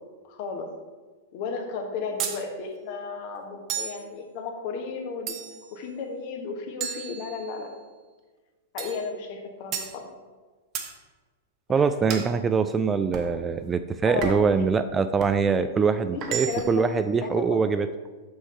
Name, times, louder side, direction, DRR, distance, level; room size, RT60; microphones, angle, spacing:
voice 1, 0.2-0.7 1.3-5.4 5.7-7.7 8.7-10.1 11.7-12.2 14.0-14.3 14.6-14.7 16.1-16.2 16.5-16.9 17.2-17.6, left 4 dB, 50° left, 3 dB, 1.4 m, -34 dB
sound 1, 2.2-2.4 3.7-4.0 5.3-5.7 6.8-7.7 8.8-9.1 9.7-10.0 10.7-11.0 12.1-12.3 13.1-13.4 14.2-14.5 15.2-15.4 16.2-16.8, right 8 dB, 40° right, 0.9 m, -33 dB
voice 2, 11.7-17.9, right 5 dB, 20° right, 10 dB, 0.4 m, -23 dB
6.3 x 6.2 x 4.4 m, 1.3 s
figure-of-eight pair, 100°, 0 cm